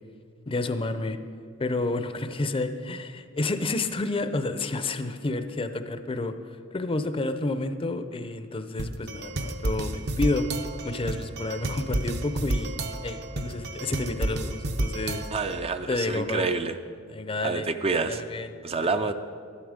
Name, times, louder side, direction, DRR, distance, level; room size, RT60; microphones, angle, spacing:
voice 1, 0.5-1.2 1.6-6.3 6.7-10.4 10.8-12.8 13.0-15.2 15.9-16.5 17.1-17.7 18.0-18.5 19.0-19.1, left 2 dB, 25° left, 9 dB, 0.6 m, -30 dB
sound 1, 8.8-15.6, right 1 dB, 50° right, 0.7 m, -31 dB
voice 2, 15.3-16.8 17.4-18.2 18.6-19.1, right 4 dB, 30° right, 8 dB, 0.4 m, -27 dB
13.0 x 11.5 x 5.0 m, 2.2 s
head